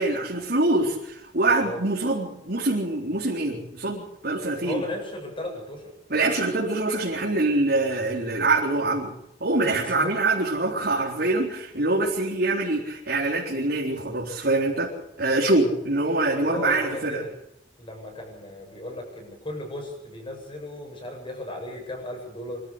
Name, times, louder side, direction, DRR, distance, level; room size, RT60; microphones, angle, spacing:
voice 1, 0.0-4.8 6.1-9.1 9.4-14.9 15.2-17.2, right 2 dB, 65° right, -4 dB, 4.1 m, -24 dB
voice 2, 4.6-5.9 9.6-10.1 15.7-15.8 16.4-17.3 17.8-22.6, left 1 dB, 30° left, 2 dB, 7.5 m, -35 dB
25.5 x 13.0 x 8.3 m, 0.82 s
head